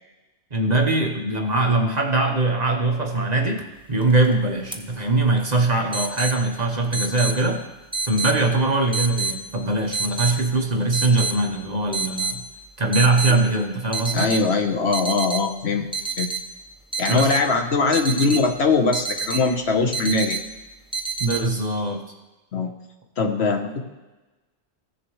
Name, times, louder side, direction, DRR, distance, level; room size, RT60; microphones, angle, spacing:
voice 1, 0.5-3.6 3.9-7.6 8.1-12.4 12.8-14.3 17.1-17.3 21.2-22.0, right 2 dB, 40° right, 1 dB, 1.1 m, -21 dB
sound 1, 4.0-4.3 4.7-4.8 5.9-6.4 6.9-7.3 7.9-8.4 8.9-9.3 9.9-10.4 10.9-11.3 11.9-12.4 12.9-13.4 13.9-14.4 14.9-15.4 15.9-16.4 16.9-17.4 17.9-18.4 18.9-19.4 19.9-20.4 20.9-21.4, right 4 dB, 5° right, 0.6 m, -27 dB
voice 2, 14.1-15.9 16.2-16.3 17.0-20.4 22.5-22.7 23.2-23.9, left 4 dB, 65° left, 5 dB, 1.2 m, -21 dB
15.5 x 7.0 x 3.1 m, 1.1 s
omnidirectional pair, 1.2 m